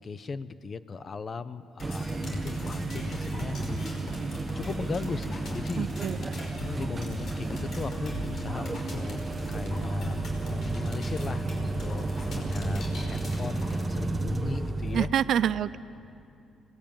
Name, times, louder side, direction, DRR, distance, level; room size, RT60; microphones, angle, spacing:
voice 1, 0.0-3.6 4.3-5.9 6.6-9.2 9.5-10.1 10.5-15.1, left 5 dB, 35° left, 13 dB, 0.8 m, -37 dB
sound 1, 1.8-13.8, left 1 dB, 50° left, 5.4 m, -40 dB
sound 2, 1.8-15.1, right 2 dB, 20° right, 1.3 m, -32 dB
voice 2, 5.8-6.2 14.9-15.8, right 9 dB, 60° right, 16 dB, 0.5 m, -26 dB
26.0 x 19.5 x 8.9 m, 2.6 s
cardioid pair, 130°, 0 cm